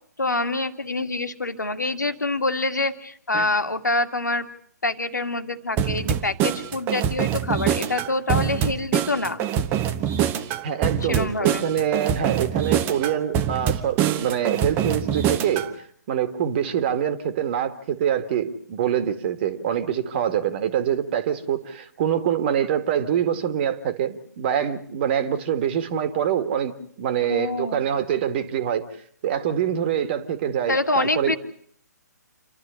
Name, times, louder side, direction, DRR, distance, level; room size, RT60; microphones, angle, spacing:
voice 1, 0.2-4.5 4.8-9.5 11.1-11.7 27.3-27.8 30.7-31.4, left 2 dB, 80° left, 7 dB, 2.0 m, -26 dB
sound 1, 5.8-15.7, right 9 dB, 20° right, 1.1 m, -24 dB
voice 2, 10.6-15.7 16.1-28.9 29.2-31.4, right 9 dB, 35° right, 9 dB, 2.0 m, -25 dB
28.0 x 12.5 x 9.9 m, 0.63 s
figure-of-eight pair, 130°, 10 cm